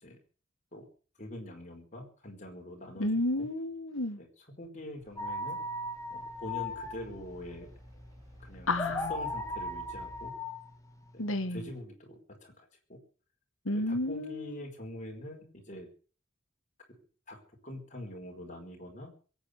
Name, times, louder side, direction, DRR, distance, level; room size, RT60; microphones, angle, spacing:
voice 1, 1.2-3.1 3.4-3.5 4.2-5.6 6.1-7.7 8.4-8.7 9.1-10.3 11.5-13.0 13.9-15.9 16.9-17.0 17.3-17.4 17.6-19.1, left 1 dB, 40° left, 4.8 m, -44 dB
voice 2, 3.0-4.2 8.7-9.1 11.2-11.6 13.7-14.6, left 1 dB, 80° left, 1.8 m, -31 dB
sound 1, 5.0-10.3, equal, 15° right, 7.3 m, -54 dB
sound 2, 5.2-11.8, left 2 dB, 15° left, 1.9 m, -38 dB
22.5 x 9.0 x 6.7 m
head